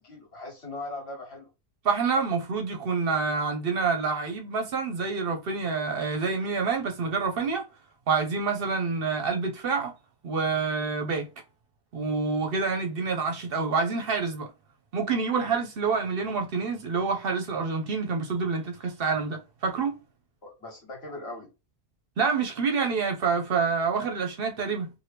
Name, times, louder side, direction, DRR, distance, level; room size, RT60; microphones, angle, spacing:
voice 1, 0.0-1.5 20.4-21.5, left 2 dB, 60° left, 1.5 m, -39 dB
voice 2, 1.8-7.7 8.1-9.9 10.2-11.3 11.9-14.5 14.9-19.9 22.2-24.9, right 5 dB, 60° right, 0.8 m, -27 dB
2.8 x 2.6 x 3.2 m
omnidirectional pair, 1.2 m